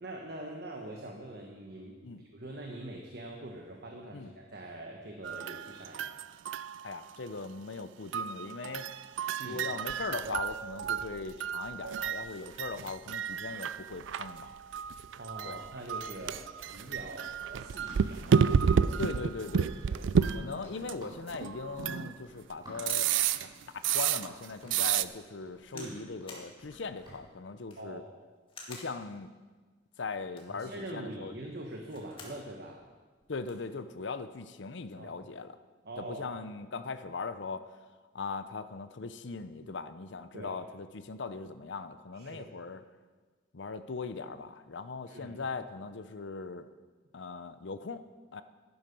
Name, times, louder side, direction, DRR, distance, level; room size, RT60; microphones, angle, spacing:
voice 1, 0.0-6.1 9.4-9.6 15.2-16.4 16.7-18.5 19.8-20.1 25.7-26.0 27.8-28.1 30.5-32.9 35.0-35.2 35.8-36.3 40.3-40.6 42.1-42.5 45.1-45.4, right 1 dB, 55° right, 1 dB, 1.3 m, -44 dB
sound 1, 5.2-7.3 8.1-22.2 22.8-24.5 24.7-25.0, right 7 dB, 75° right, 0.4 m, -31 dB
voice 2, 6.8-8.9 9.4-14.6 15.4-15.6 19.0-19.7 20.2-23.1 23.7-28.0 28.7-29.3 30.0-31.3 33.3-35.6 36.0-37.7 38.1-42.8 43.5-46.7 47.1-48.0 48.3-48.4, left 4 dB, 70° left, 11 dB, 0.7 m, -39 dB
Run, 16.8-27.2, equal, 20° right, 4.2 m, -53 dB
sound 2, 22.8-23.4 24.0-24.1 24.6-24.8 25.7-26.0 26.3-26.5 27.5-27.9 28.5-28.9 30.2-30.6 31.7-32.4 32.8-32.9 33.1-33.7 34.5-34.8, left 3 dB, 30° left, 2.0 m, -49 dB
11.0 x 11.0 x 5.3 m, 1.4 s
head